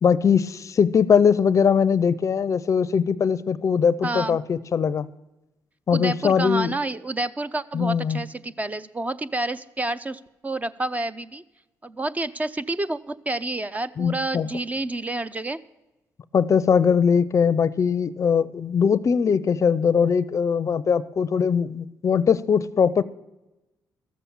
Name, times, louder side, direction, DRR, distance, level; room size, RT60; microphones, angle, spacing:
voice 1, 0.0-5.1 5.9-6.7 7.7-8.2 14.0-14.5 16.3-23.0, left 6 dB, 45° left, 17 dB, 0.5 m, -21 dB
voice 2, 4.0-4.4 5.9-11.4 11.8-15.6, right 2 dB, 20° right, 14 dB, 0.5 m, -29 dB
13.0 x 7.2 x 7.1 m, 0.99 s
cardioid pair, 85°, 7 cm